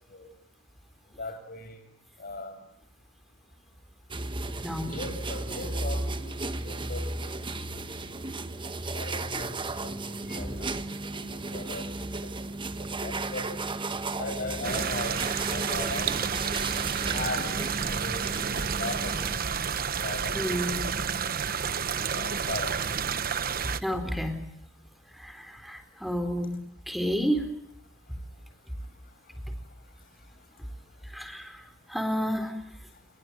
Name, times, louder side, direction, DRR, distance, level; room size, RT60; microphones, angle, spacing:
voice 1, 1.2-1.8 2.2-2.6 4.8-7.4 8.9-9.6 9.8-11.9 12.1-12.3 12.8-13.5 14.2-16.2 17.1-18.3 18.8-19.4 20.0-20.4 22.1-22.8, left 2 dB, 50° left, 7 dB, 6.5 m, -38 dB
sound 1, 4.1-19.4, right 2 dB, 25° right, 1.3 m, -34 dB
voice 2, 4.6-4.9 9.3-9.4 10.3-10.8 17.0-17.1 20.3-20.9 23.8-24.4 25.2-26.6 26.9-27.5 31.1-31.6 31.9-32.6, equal, ahead, 8 dB, 4.0 m, -31 dB
sound 2, 14.6-23.8, right 7 dB, 50° right, 1.1 m, -30 dB
29.5 x 22.5 x 9.0 m, 0.76 s
head